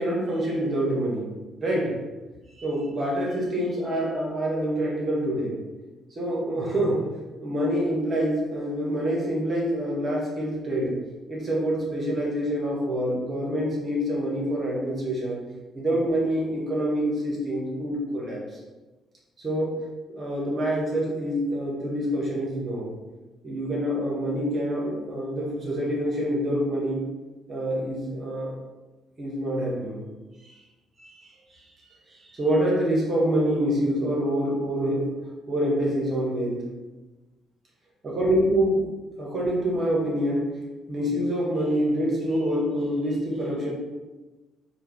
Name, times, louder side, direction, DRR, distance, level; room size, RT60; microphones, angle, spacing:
voice 1, 0.0-1.3 1.6-2.0 2.6-5.5 6.1-7.1 7.4-10.9 11.3-15.4 15.7-18.4 19.4-19.8 20.1-22.9 23.4-27.0 27.5-28.5 29.2-30.0 30.4-30.5 31.0-35.1 35.5-36.6 38.0-38.8 39.2-40.5 40.9-43.7, equal, 40° right, -3 dB, 1.4 m, -26 dB
4.2 x 2.4 x 3.4 m, 1.2 s
hypercardioid pair, 45°, 0 cm